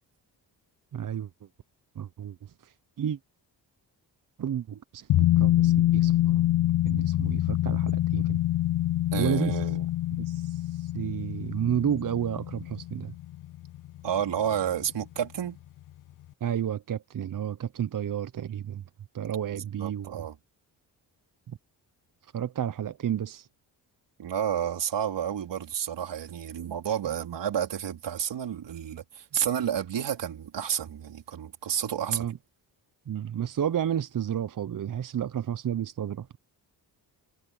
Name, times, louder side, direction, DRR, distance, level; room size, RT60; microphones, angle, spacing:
voice 1, 0.9-1.3 2.0-3.2 4.4-6.4 6.8-8.4 9.2-9.7 10.2-13.1 16.4-18.8 19.1-20.2 22.3-23.5 26.7-26.8 32.0-32.4 33.1-36.4, right 9 dB, 50° right, 0.8 m, -31 dB
sound 1, 5.1-14.2 14.5-14.6, left 14 dB, 50° left, 0.4 m, -25 dB
voice 2, 9.1-9.8 14.0-15.6 19.5-20.4 24.2-32.3, right 9 dB, 75° right, 4.0 m, -30 dB
cardioid pair, 65°, 43 cm